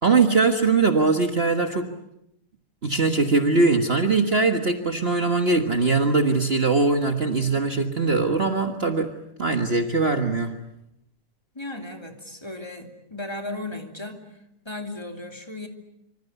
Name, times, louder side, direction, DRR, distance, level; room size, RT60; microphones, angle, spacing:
voice 1, 0.0-1.9 2.8-9.1 9.4-10.6, right 3 dB, 60° right, 5 dB, 0.6 m, -21 dB
voice 2, 11.5-14.4 14.6-15.7, left 2 dB, 10° left, 4 dB, 2.4 m, -35 dB
26.0 x 26.0 x 8.2 m, 0.79 s
omnidirectional pair, 3.6 m